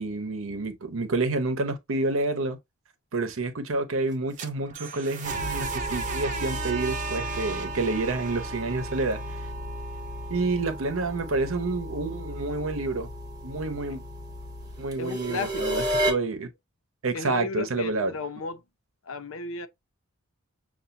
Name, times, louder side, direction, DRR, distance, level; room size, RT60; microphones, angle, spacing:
voice 1, 0.0-2.6 3.1-9.4 10.3-13.1 13.4-14.0 14.8-16.5 17.0-18.1, right 3 dB, 70° right, 0.9 m, -29 dB
sound 1, 4.1-10.0, right 4 dB, 40° right, 0.8 m, -38 dB
sound 2, 5.2-16.1, right 1 dB, 20° right, 1.2 m, -33 dB
voice 2, 15.0-15.9 17.1-18.6 19.0-19.7, left 3 dB, 75° left, 0.6 m, -34 dB
6.9 x 2.5 x 2.6 m
head